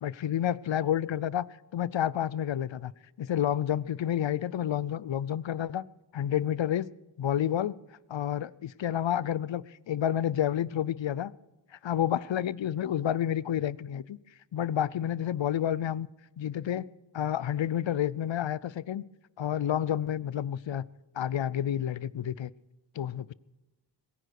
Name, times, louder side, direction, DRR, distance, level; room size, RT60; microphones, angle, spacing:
voice 1, 0.0-1.4 1.7-2.9 3.2-5.8 6.1-6.9 7.2-7.8 8.1-11.3 11.8-14.2 14.5-16.1 16.4-16.9 17.1-19.0 19.4-20.8 21.1-22.5 23.0-23.3, left 10 dB, 75° left, 21 dB, 0.6 m, -29 dB
22.0 x 10.0 x 6.5 m, 1.1 s
wide cardioid pair, 90°, 45 cm